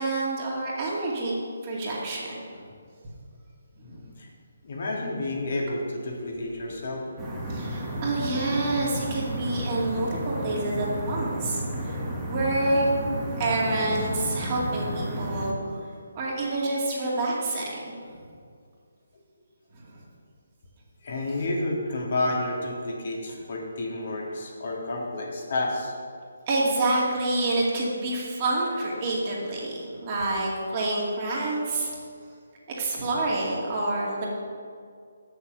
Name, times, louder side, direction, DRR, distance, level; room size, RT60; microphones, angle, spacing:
voice 1, 0.0-1.3 1.6-2.6 3.8-4.0 7.5-12.9 13.4-15.8 16.1-17.7 19.9-20.0 26.5-32.0 32.8-34.2, right 2 dB, 30° right, -4 dB, 2.2 m, -28 dB
voice 2, 3.8-4.3 4.6-7.0 21.0-25.9, left 2 dB, 55° left, -1 dB, 1.8 m, -30 dB
sound 1, 7.2-15.5, right 1 dB, 10° right, 1.3 m, -32 dB
6.8 x 6.8 x 6.8 m, 2.2 s
figure-of-eight pair, 155°, 0 cm